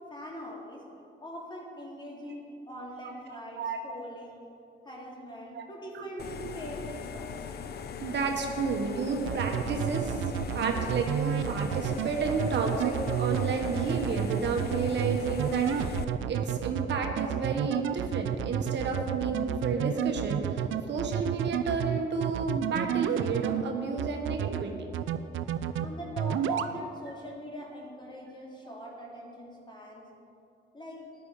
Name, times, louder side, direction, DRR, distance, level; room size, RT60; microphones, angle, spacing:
voice 1, 0.1-0.8 1.2-4.5 4.8-7.4 25.8-30.1 30.7-31.0, equal, 25° left, -1 dB, 2.8 m, -42 dB
voice 2, 3.0-3.8 5.5-5.7 5.9-6.0 6.3-6.5 8.0-10.2 10.5-16.0 16.3-24.9 26.5-26.6, right 4 dB, 60° right, 3 dB, 1.5 m, -31 dB
sound 1, 6.2-16.1, left 6 dB, 55° left, 0.7 m, -39 dB
sound 2, 9.3-23.6 24.0-24.6 24.9-25.9 26.2-26.7, right 10 dB, 80° right, 0.6 m, -30 dB
14.0 x 10.0 x 4.9 m, 2.6 s
cardioid pair, 90°, 20 cm